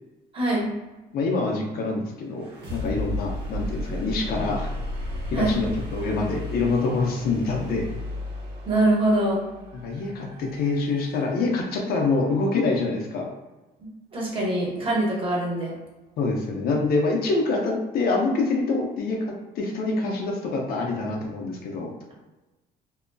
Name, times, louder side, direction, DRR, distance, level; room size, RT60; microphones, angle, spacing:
voice 1, 0.3-0.7 5.3-5.6 8.7-9.4 13.8-15.7, right 1 dB, 30° right, -4 dB, 1.1 m, -24 dB
voice 2, 1.1-4.7 5.3-7.9 9.8-13.3 16.2-21.9, left 3 dB, 65° left, 0 dB, 0.7 m, -26 dB
sound 1, 2.3-12.1, left 1 dB, 70° right, 1.1 m, -34 dB
2.8 x 2.5 x 2.3 m, 1.1 s
cardioid pair, 110°, 17 cm